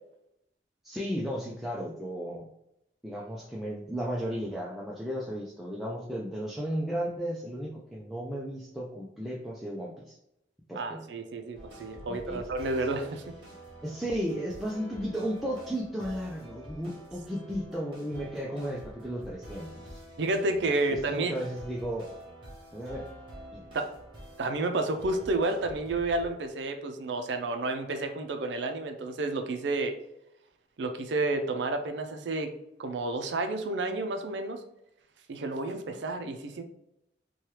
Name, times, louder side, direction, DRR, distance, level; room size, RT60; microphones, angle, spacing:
voice 1, 0.8-2.5 3.0-10.2 10.7-11.0 12.1-12.4 13.8-20.0 20.9-22.1 22.7-23.1 23.5-23.6, equal, ahead, -5 dB, 0.3 m, -34 dB
voice 2, 10.7-13.3 20.2-21.3 23.7-23.9 24.4-29.9 30.8-32.5 32.8-34.6 35.3-36.6, right 2 dB, 80° right, 6 dB, 0.4 m, -30 dB
sound 1, 11.5-26.5, right 1 dB, 25° right, 0.9 m, -47 dB
2.9 x 2.3 x 3.2 m, 0.82 s
head